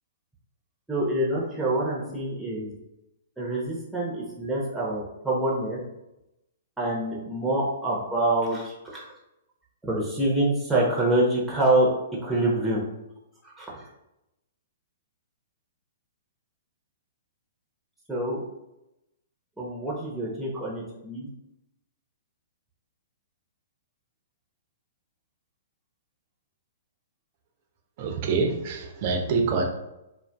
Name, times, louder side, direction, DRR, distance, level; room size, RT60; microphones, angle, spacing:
voice 1, 0.9-2.7 3.4-5.8 6.8-9.1 9.8-11.9 12.2-12.8 13.4-13.9 18.1-18.4 19.6-21.3, right 1 dB, 5° right, -4 dB, 0.6 m, -26 dB
voice 2, 28.0-29.6, right 4 dB, 45° right, 3 dB, 0.5 m, -26 dB
2.5 x 2.4 x 2.2 m, 0.90 s
hypercardioid pair, 120°, 0 cm